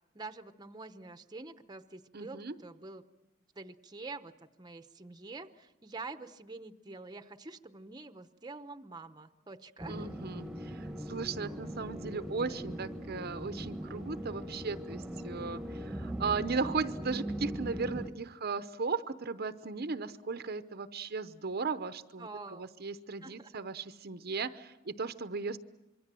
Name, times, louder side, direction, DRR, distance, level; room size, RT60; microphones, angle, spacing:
voice 1, 0.1-3.1 3.6-4.3 4.6-10.1 22.2-22.7 23.2-23.5, right 3 dB, 20° right, 9 dB, 0.9 m, -46 dB
voice 2, 2.1-2.5 9.9-25.6, right 4 dB, 50° right, 11 dB, 0.8 m, -36 dB
sound 1, 9.8-18.1, right 1 dB, 5° right, 1.2 m, -40 dB
26.0 x 23.0 x 7.6 m, 0.95 s
head